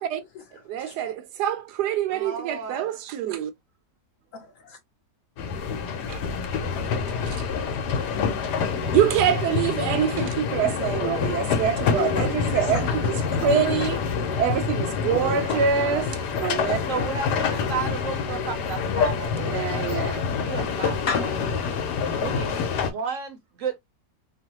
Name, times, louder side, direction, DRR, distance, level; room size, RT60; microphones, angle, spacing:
voice 1, 0.7-3.5 6.1-6.2 7.3-7.4 8.9-16.1 16.4-16.8 19.5-20.3, right 8 dB, 80° right, 1.1 m, -25 dB
voice 2, 2.1-2.9 10.9-11.6 12.5-13.5 15.0-16.1 16.9-21.8 22.2-22.6 22.9-23.8, right 6 dB, 65° right, 0.9 m, -35 dB
voice 3, 4.4-4.8 6.3-6.9 9.9-10.3 12.2-13.0 13.2-13.4 21.1-21.2 21.6-21.8, left 5 dB, 65° left, 0.9 m, -36 dB
sound 1, 5.4-22.9, left 6 dB, 90° left, 1.3 m, -26 dB
3.0 x 2.1 x 2.8 m
omnidirectional pair, 1.8 m